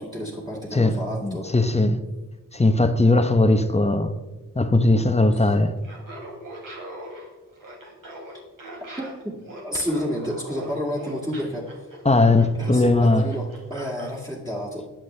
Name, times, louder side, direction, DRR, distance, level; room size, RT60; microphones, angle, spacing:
voice 1, 0.0-1.5 5.4-5.6 9.6-11.7 12.6-14.9, equal, 10° right, 2.2 m, -30 dB
voice 2, 0.7-2.0 2.5-4.1 4.6-5.7 12.0-13.3, left 2 dB, 20° left, 0.8 m, -19 dB
Laughter, 5.8-14.1, right 1 dB, 70° right, 3.5 m, -40 dB
20.5 x 7.4 x 3.3 m
wide cardioid pair, 90°, 34 cm